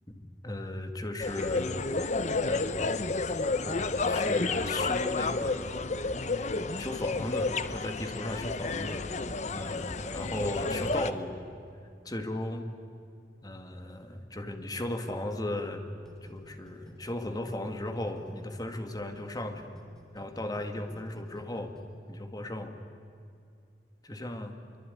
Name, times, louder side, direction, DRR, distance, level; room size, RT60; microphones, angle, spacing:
voice 1, 0.1-1.9 2.5-3.1 3.6-5.9 6.8-9.2 9.5-11.4 12.1-12.7 13.4-15.8 16.2-19.8 20.1-21.8 22.1-22.8 24.0-24.5, left 1 dB, 20° left, 6 dB, 2.0 m, -36 dB
sound 1, 1.2-11.1, left 3 dB, 40° left, 0.9 m, -31 dB
sound 2, 16.0-18.6 19.0-21.8, equal, 5° left, 3.3 m, -54 dB
25.0 x 23.5 x 9.7 m, 2.4 s
head